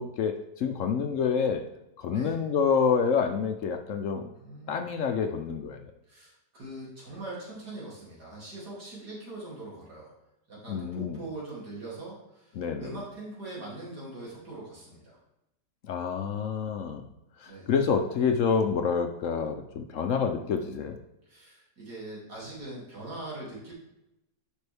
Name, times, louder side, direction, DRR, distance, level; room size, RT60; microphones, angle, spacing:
voice 1, 0.0-1.6 2.0-4.3 4.7-5.8 10.7-11.2 12.6-12.9 15.9-17.0 17.4-21.0, left 6 dB, 65° left, 6 dB, 0.8 m, -28 dB
voice 2, 2.1-2.4 4.3-4.8 6.1-10.1 10.5-15.2 17.4-17.7 20.3-20.7 21.3-23.7, right 2 dB, 85° right, -6 dB, 3.4 m, -42 dB
11.0 x 5.3 x 3.4 m, 0.88 s
omnidirectional pair, 1.7 m